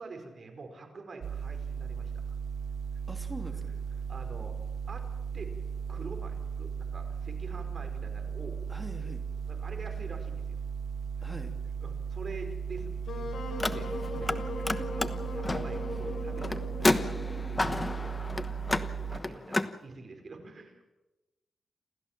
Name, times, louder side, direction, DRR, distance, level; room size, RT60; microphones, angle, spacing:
voice 1, 0.0-2.1 3.6-3.7 4.1-4.6 4.9-5.0 5.3-5.5 5.9-8.7 9.5-10.6 11.8-15.0 15.3-16.9 17.2-17.6 18.0-19.6 19.8-20.9, right 3 dB, 45° right, 4 dB, 5.0 m, -46 dB
sound 1, 1.2-19.2, right 6 dB, 70° right, 0.7 m, -36 dB
voice 2, 3.1-3.6 8.7-9.3 11.2-11.6 14.1-14.5 14.8-15.1 15.9-16.0 18.0-18.7, right 1 dB, 15° right, 4 dB, 2.7 m, -44 dB
Wind instrument woodwind instrument, 13.1-18.2, left 2 dB, 80° left, 5.4 m, -39 dB
Car, 13.5-14.4 14.6-19.7, left 2 dB, 20° left, 1.1 m, -31 dB
28.5 x 14.0 x 7.5 m, 1.0 s
wide cardioid pair, 110°, 0 cm